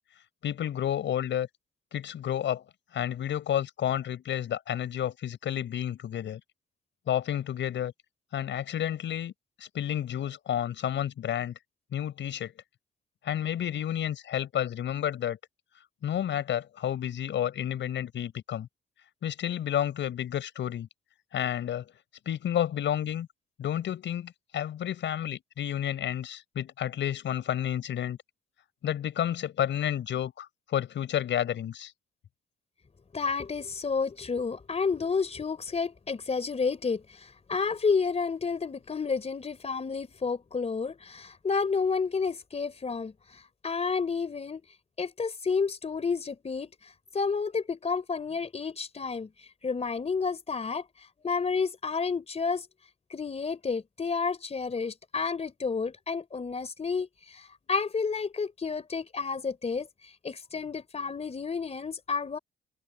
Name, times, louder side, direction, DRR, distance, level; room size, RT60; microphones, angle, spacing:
voice 1, 0.4-1.5 1.9-2.6 2.9-6.4 7.1-7.9 8.3-9.3 9.6-11.5 11.9-12.5 13.2-15.4 16.0-18.7 19.2-20.9 21.3-21.8 22.2-23.3 23.6-28.2 28.8-31.9, left 10 dB, 70° left, 6.5 m, -30 dB
voice 2, 33.1-44.6 45.0-52.7 53.1-62.4, left 5 dB, 30° left, 4.3 m, -31 dB
cardioid pair, 90°, 20 cm